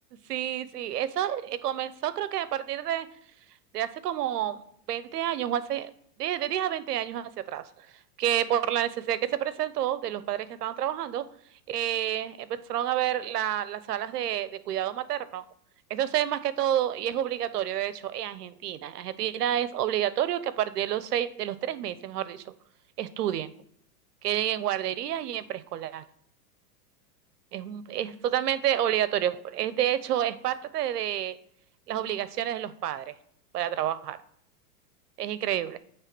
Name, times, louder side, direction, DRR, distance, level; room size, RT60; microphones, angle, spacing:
voice 1, 0.3-3.1 3.7-4.6 4.9-5.9 6.2-7.7 8.2-11.2 11.7-15.4 15.9-22.4 23.0-23.5 24.2-26.0 27.5-31.4 31.9-33.1 33.5-34.2 35.2-35.8, right 11 dB, 85° right, 15 dB, 0.8 m, -29 dB
9.0 x 3.3 x 6.0 m, 0.68 s
hypercardioid pair, 125°, 46 cm